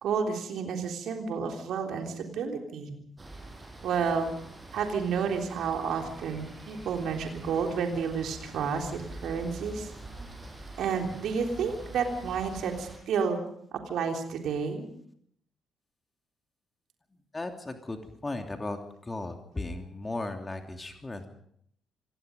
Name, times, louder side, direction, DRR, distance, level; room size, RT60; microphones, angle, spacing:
voice 1, 0.0-3.0 3.8-4.3 4.7-9.9 10.8-13.4 13.9-14.9, right 6 dB, 60° right, 3 dB, 3.5 m, -30 dB
sound 1, 3.2-13.0, right 2 dB, 25° right, 6.3 m, -45 dB
voice 2, 17.3-18.8 19.0-21.3, left 2 dB, 25° left, 4 dB, 3.0 m, -36 dB
27.0 x 18.5 x 5.3 m, 0.68 s
figure-of-eight pair, 40°, 0 cm